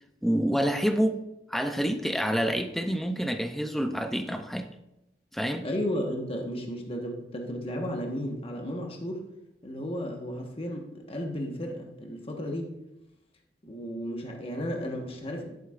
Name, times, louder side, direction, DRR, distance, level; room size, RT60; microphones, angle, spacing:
voice 1, 0.2-1.2 1.5-4.7 5.3-5.6, equal, ahead, 7 dB, 0.5 m, -27 dB
voice 2, 5.6-9.3 9.6-12.7 13.6-15.6, equal, 30° left, 1 dB, 1.3 m, -34 dB
11.5 x 7.8 x 2.5 m, 0.89 s
head